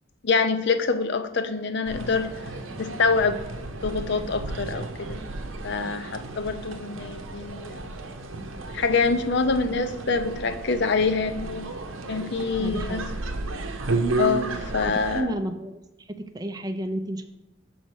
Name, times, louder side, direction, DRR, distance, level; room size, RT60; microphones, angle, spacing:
voice 1, 0.2-2.3 2.8-3.4 3.8-5.2 5.6-7.9 8.7-11.7 12.1-13.1 14.2-15.3, left 4 dB, 60° left, 9 dB, 0.6 m, -25 dB
sound 1, 1.8-15.2, right 2 dB, 80° right, 0.7 m, -33 dB
voice 2, 12.6-13.1 15.1-17.2, right 1 dB, 20° right, 6 dB, 0.4 m, -31 dB
6.5 x 3.9 x 6.3 m, 0.97 s
head